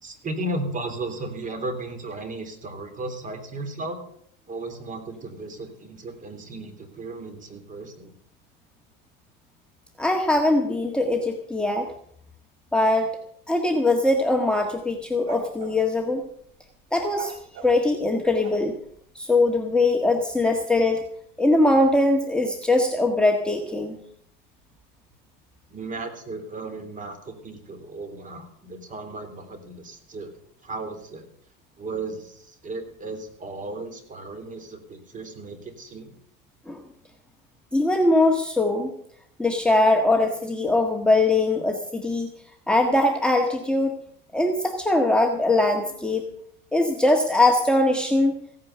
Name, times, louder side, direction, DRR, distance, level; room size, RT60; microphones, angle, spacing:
voice 1, 0.0-4.0 4.5-8.1 25.7-30.3 30.6-31.2 31.8-36.1, right 2 dB, 25° right, 6 dB, 3.3 m, -35 dB
voice 2, 10.0-11.9 12.7-13.1 13.5-16.2 16.9-17.3 17.6-18.7 19.1-21.0 21.4-24.0 36.7-36.8 37.7-38.9 39.4-42.3 42.7-43.9 44.3-46.2 46.7-48.3, left 2 dB, 5° left, 2 dB, 1.6 m, -21 dB
sound 1, 14.8-15.8 17.1-18.9, right 3 dB, 50° right, 3.6 m, -41 dB
16.0 x 9.5 x 6.7 m, 0.67 s
supercardioid pair, 120°, 29 cm